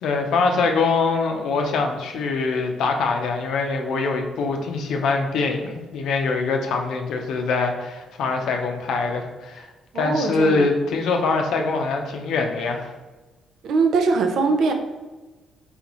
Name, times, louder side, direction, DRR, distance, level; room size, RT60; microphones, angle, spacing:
voice 1, 0.0-9.7 9.9-12.9, left 4 dB, 80° left, 3 dB, 0.6 m, -23 dB
voice 2, 9.9-10.7 13.6-14.7, right 4 dB, 70° right, 4 dB, 0.5 m, -21 dB
4.0 x 3.5 x 3.0 m, 1.2 s
cardioid pair, 90°, 0 cm